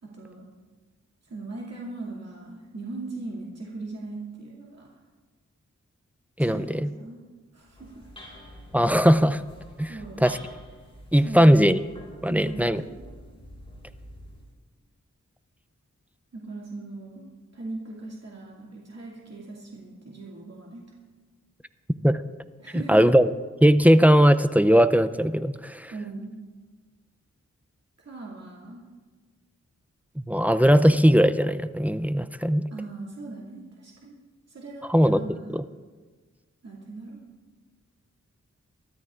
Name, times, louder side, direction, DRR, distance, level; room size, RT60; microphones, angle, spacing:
voice 1, 0.0-0.5 1.2-4.9 6.4-7.2 7.5-8.1 9.9-10.2 11.2-11.8 12.3-13.0 16.3-20.8 22.6-23.2 25.9-26.4 28.0-28.8 32.7-34.1 34.5-35.6 36.6-37.2, right 3 dB, 60° right, -5 dB, 2.4 m, -39 dB
voice 2, 6.4-6.9 8.7-9.4 9.8-9.9 10.2-10.4 11.1-11.8 12.2-12.8 22.0-22.2 22.7-23.3 23.6-25.9 30.2-32.7 34.9-35.2 35.5-35.6, equal, 5° right, 12 dB, 0.4 m, -19 dB
sound 1, 7.5-14.5, equal, 20° left, 5.1 m, -47 dB
23.5 x 13.0 x 2.5 m, 1.4 s
wide cardioid pair, 75°, 30 cm